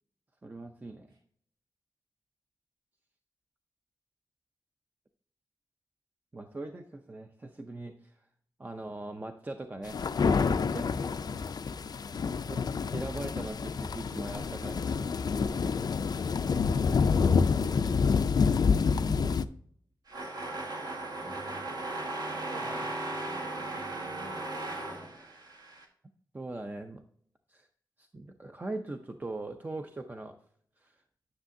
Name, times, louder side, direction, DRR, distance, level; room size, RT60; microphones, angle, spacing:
voice 1, 0.4-1.1 6.3-8.2 8.6-11.1 12.5-12.7 12.9-15.3 18.8-19.2 26.3-27.0 27.5-27.7 28.0-30.3 30.8-31.0, right 2 dB, 20° right, 6 dB, 0.5 m, -41 dB
sound 1, 9.9-19.4, left 5 dB, 55° left, 0.4 m, -28 dB
sound 2, 20.1-25.8, right 2 dB, 55° right, 1.5 m, -37 dB
voice 2, 21.2-21.8 22.5-25.2, equal, 90° right, -3 dB, 2.7 m, -50 dB
9.9 x 6.4 x 2.6 m, 0.62 s
wide cardioid pair, 145°, 8 cm